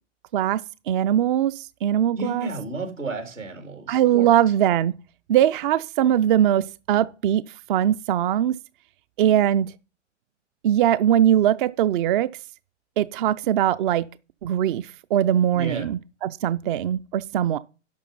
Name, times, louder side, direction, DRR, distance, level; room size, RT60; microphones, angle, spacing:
voice 1, 0.9-2.5 3.9-5.0 5.3-7.4 7.7-8.6 9.2-9.7 10.6-12.3 13.0-14.1 14.4-17.6, right 11 dB, 45° right, 0.5 m, -21 dB
voice 2, 2.2-4.3 15.5-15.9, right 2 dB, 90° right, 3.4 m, -32 dB
11.5 x 6.0 x 5.5 m
figure-of-eight pair, 100°, 37 cm